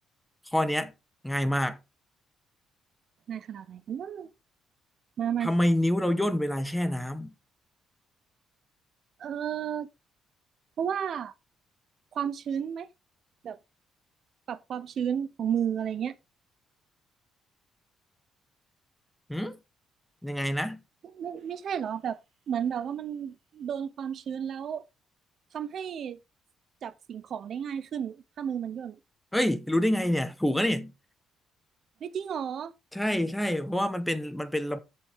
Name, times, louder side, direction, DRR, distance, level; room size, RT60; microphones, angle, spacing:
voice 1, 0.5-0.9 1.2-1.8 5.4-7.3 19.3-19.6 20.2-20.8 29.3-30.9 32.9-34.8, left 1 dB, 5° left, 0.9 m, -27 dB
voice 2, 3.3-4.3 5.2-5.5 9.2-9.9 10.8-11.3 12.1-12.9 13.4-13.6 14.5-16.2 21.1-22.2 22.5-24.8 25.5-26.2 26.8-29.0 32.0-32.7, right 8 dB, 45° right, 0.5 m, -32 dB
15.0 x 5.4 x 3.4 m
cardioid pair, 180°, 0 cm